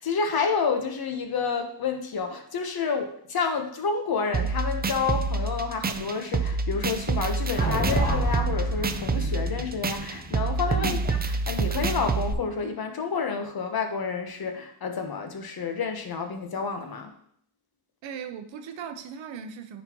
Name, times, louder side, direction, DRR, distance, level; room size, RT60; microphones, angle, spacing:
voice 1, 0.0-11.2 11.5-17.1, left 5 dB, 55° left, 5 dB, 1.2 m, -29 dB
sound 1, 4.3-12.3, right 4 dB, 20° right, 0.5 m, -27 dB
sound 2, 7.6-11.8, left 1 dB, 25° left, 2.7 m, -32 dB
voice 2, 18.0-19.8, right 7 dB, 90° right, 8 dB, 0.8 m, -38 dB
9.6 x 4.2 x 3.0 m, 0.67 s
cardioid pair, 75°, 44 cm